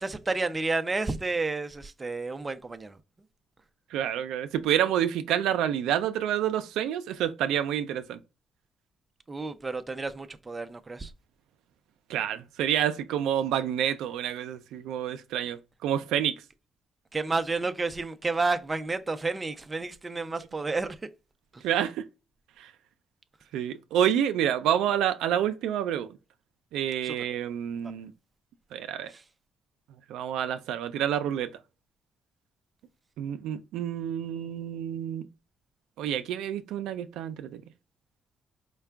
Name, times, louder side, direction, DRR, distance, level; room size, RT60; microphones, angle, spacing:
voice 1, 0.0-3.0 9.3-11.1 17.1-21.0 21.5-21.6 27.0-27.2 27.8-27.9 29.1-29.2, right 3 dB, 25° right, 0.5 m, -31 dB
voice 2, 3.9-8.2 12.1-16.3 21.6-22.0 22.6-22.7 23.5-26.1 26.7-28.1 28.7-29.1 30.1-31.5 33.2-35.2 36.0-37.6, right 10 dB, 90° right, 0.4 m, -28 dB
4.6 x 2.2 x 3.4 m
cardioid pair, 90°, 0 cm